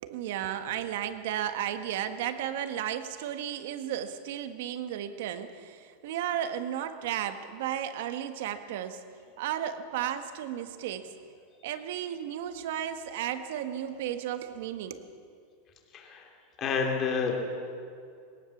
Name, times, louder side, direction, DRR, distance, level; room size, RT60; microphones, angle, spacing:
voice 1, 0.0-9.0 9.4-11.1 11.6-15.1, right 10 dB, 65° right, 9 dB, 1.5 m, -34 dB
voice 2, 15.9-16.3 16.6-17.4, left 5 dB, 25° left, 2 dB, 2.8 m, -29 dB
21.0 x 19.0 x 7.2 m, 2.4 s
supercardioid pair, 170°, 0 cm